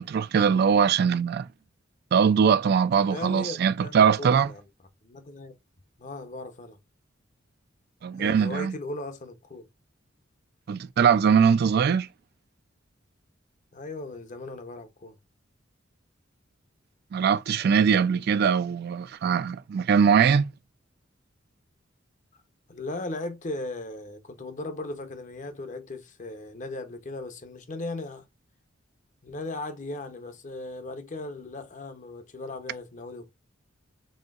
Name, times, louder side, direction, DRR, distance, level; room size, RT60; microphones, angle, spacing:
voice 1, 0.0-1.5 2.1-4.5 8.0-8.7 10.7-12.1 17.1-20.4, right 7 dB, 55° right, 0.3 m, -21 dB
voice 2, 3.0-4.6 5.0-5.5 6.0-6.8 8.2-9.7 13.7-15.2 22.7-28.2 29.2-33.3, left 2 dB, 40° left, 0.7 m, -37 dB
4.3 x 3.8 x 2.3 m
head